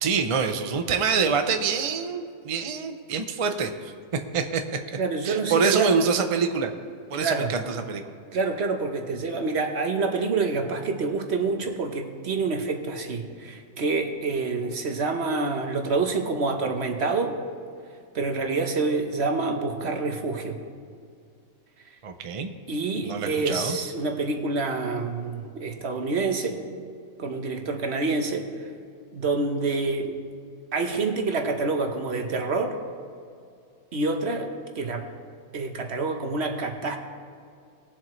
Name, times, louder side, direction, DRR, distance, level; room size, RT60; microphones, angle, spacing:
voice 1, 0.0-3.9 4.3-4.6 5.2-6.7 7.1-8.0 22.0-22.5 23.0-23.8, right 5 dB, 40° right, 6 dB, 0.5 m, -25 dB
voice 2, 5.0-5.9 7.1-7.5 8.3-17.4 18.1-20.6 22.7-26.6 27.2-28.5 29.1-30.2 30.7-32.8 33.9-35.1 35.5-37.0, right 3 dB, 60° right, 4 dB, 1.3 m, -27 dB
20.0 x 7.7 x 3.2 m, 2.3 s
omnidirectional pair, 1.3 m